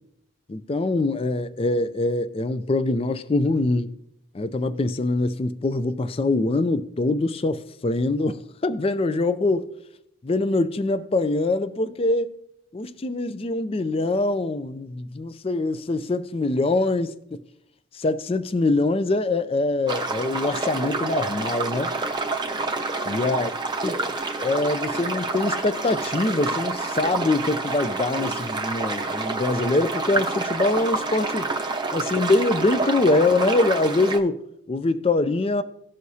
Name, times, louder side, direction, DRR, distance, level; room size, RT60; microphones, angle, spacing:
voice 1, 0.5-3.9 4.3-9.7 10.2-12.3 12.7-17.1 17.9-21.9 23.1-23.5 23.8-23.9 24.4-31.5 31.9-34.4 34.7-35.6, left 2 dB, 25° left, 0.4 m, -24 dB
sound 1, 19.9-34.2, right 3 dB, 20° right, 0.6 m, -28 dB
17.0 x 6.4 x 2.8 m
head